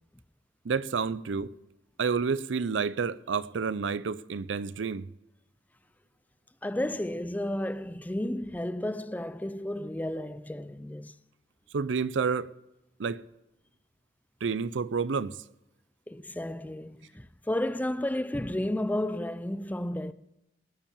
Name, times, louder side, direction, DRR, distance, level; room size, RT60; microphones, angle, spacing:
voice 1, 0.6-1.5 2.0-5.1 11.7-12.5 13.0-13.2 14.4-15.4, right 5 dB, 85° right, 0.5 m, -29 dB
voice 2, 6.6-11.1 16.1-20.1, left 1 dB, 10° left, 0.4 m, -32 dB
18.5 x 7.4 x 7.2 m
head